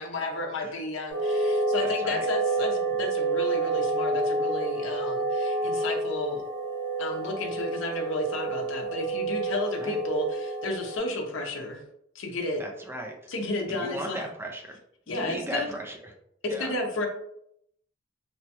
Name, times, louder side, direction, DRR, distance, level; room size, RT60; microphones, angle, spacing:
voice 1, 0.0-6.4 7.0-11.8 12.1-12.6 13.3-14.3 15.1-15.7 16.4-17.1, left 2 dB, 75° left, 3 dB, 0.6 m, -32 dB
sound 1, 1.1-11.0, right 2 dB, 70° right, 1.3 m, -29 dB
voice 2, 1.8-2.3 9.8-10.0 12.6-13.2 13.7-14.8 15.1-16.1 16.5-16.7, right 1 dB, 10° right, 2 dB, 0.4 m, -37 dB
3.0 x 2.2 x 2.8 m, 0.73 s
head